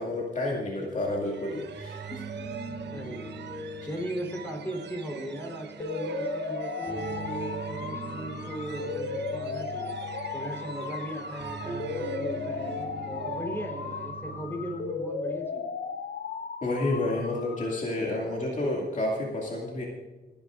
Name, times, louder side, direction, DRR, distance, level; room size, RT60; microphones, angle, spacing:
voice 1, 0.0-2.5 16.6-19.9, left 2 dB, 45° left, -2 dB, 2.4 m, -30 dB
sound 1, 1.2-14.7, right 6 dB, 75° right, 1.0 m, -42 dB
sound 2, 1.7-15.0, right 3 dB, 5° right, 4.3 m, -42 dB
voice 2, 2.9-3.4 3.9-10.0 10.3-12.8 13.1-15.6, equal, 15° left, 2 dB, 4.0 m, -38 dB
sound 3, 5.8-17.8, left 5 dB, 60° left, 1.1 m, -36 dB
27.5 x 10.0 x 2.6 m, 1.3 s
cardioid pair, 105°, 18 cm